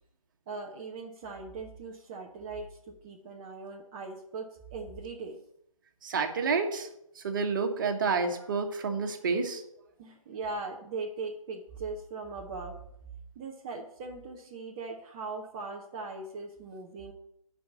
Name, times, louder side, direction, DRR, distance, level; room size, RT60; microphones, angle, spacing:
voice 1, 0.5-5.4 10.0-12.8 13.4-17.1, right 3 dB, 10° right, 0 dB, 0.4 m, -40 dB
voice 2, 6.0-6.9 7.2-9.6, right 4 dB, 35° right, 5 dB, 1.2 m, -29 dB
9.2 x 5.4 x 7.1 m, 0.77 s
figure-of-eight pair, 145°, 18 cm